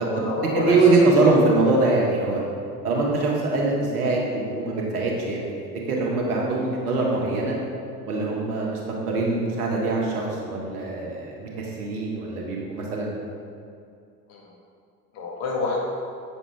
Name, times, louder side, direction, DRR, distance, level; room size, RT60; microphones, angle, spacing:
voice 1, 0.0-0.8 1.2-1.3 14.3-14.4 15.1-15.8, left 3 dB, 55° left, -3 dB, 1.9 m, -28 dB
voice 2, 0.5-2.4 2.8-5.5 5.9-7.6 8.1-8.8 9.1-13.2, right 3 dB, 70° right, -2 dB, 1.7 m, -23 dB
8.2 x 7.0 x 3.5 m, 2.3 s
figure-of-eight pair, 65°, 47 cm